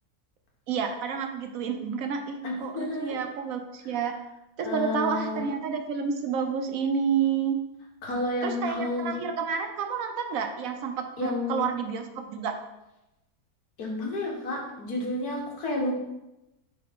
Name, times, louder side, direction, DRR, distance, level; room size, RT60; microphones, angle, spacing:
voice 1, 0.7-4.1 4.6-7.6 8.4-12.5, right 6 dB, 70° right, 5 dB, 1.1 m, -30 dB
voice 2, 2.4-3.2 3.8-3.9 4.6-5.5 8.0-9.2 11.2-11.7 13.8-15.9, left 2 dB, 80° left, -1 dB, 1.8 m, -31 dB
8.7 x 3.3 x 3.6 m, 0.93 s
omnidirectional pair, 1.6 m